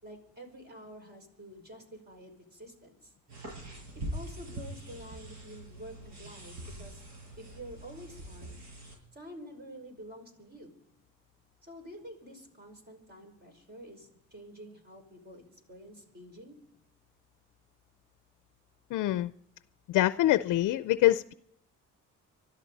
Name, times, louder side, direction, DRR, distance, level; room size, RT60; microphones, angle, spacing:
voice 1, 0.0-3.1 4.1-7.1 7.4-8.6 9.1-10.7 11.6-15.4 15.7-16.6, equal, 35° right, 5.5 m, -48 dB
sound 1, 3.3-9.0, right 1 dB, 65° right, 7.8 m, -43 dB
voice 2, 18.9-19.3 19.9-21.3, left 15 dB, 85° left, 0.5 m, -25 dB
25.0 x 12.5 x 4.1 m
cardioid pair, 90°, 30 cm